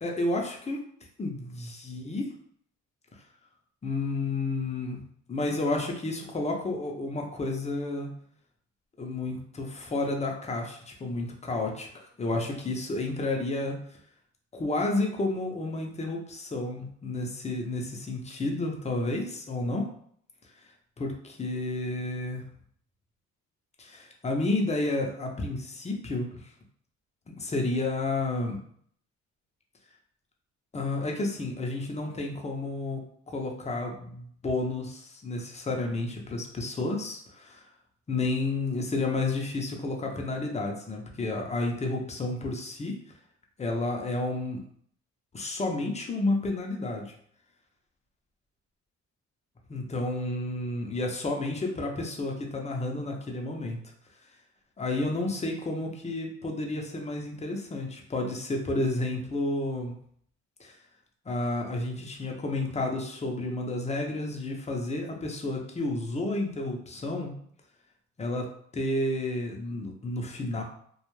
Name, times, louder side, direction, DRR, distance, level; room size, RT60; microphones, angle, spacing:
voice 1, 0.0-0.8 1.2-2.3 3.8-5.0 5.3-8.1 9.0-11.9 12.2-13.8 14.5-19.9 21.0-22.4 23.8-26.3 27.4-28.6 30.7-33.0 33.3-37.6 38.1-43.0 43.6-44.6 45.3-47.1 49.7-53.8 54.8-59.9 60.6-60.8 61.3-67.3 68.2-68.5 68.7-70.6, left 2 dB, 20° left, 1 dB, 0.6 m, -31 dB
2.3 x 2.2 x 3.0 m, 0.63 s
cardioid pair, 90°, 30 cm